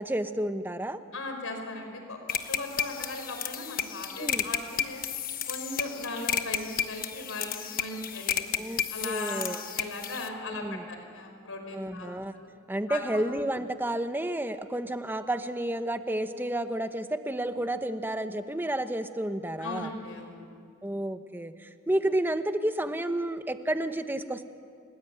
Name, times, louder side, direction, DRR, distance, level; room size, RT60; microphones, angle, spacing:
voice 1, 0.0-1.0 4.2-4.5 8.6-9.6 10.5-10.8 11.7-12.3 12.7-19.9 20.8-24.4, right 1 dB, 10° right, 9 dB, 0.9 m, -31 dB
voice 2, 1.1-5.0 5.5-8.4 8.9-12.5 12.9-13.2 19.6-20.4, left 2 dB, 65° left, 4 dB, 5.1 m, -38 dB
sound 1, 2.3-10.3, left 9 dB, 40° left, 1.2 m, -32 dB
29.5 x 19.5 x 9.1 m, 2.3 s
head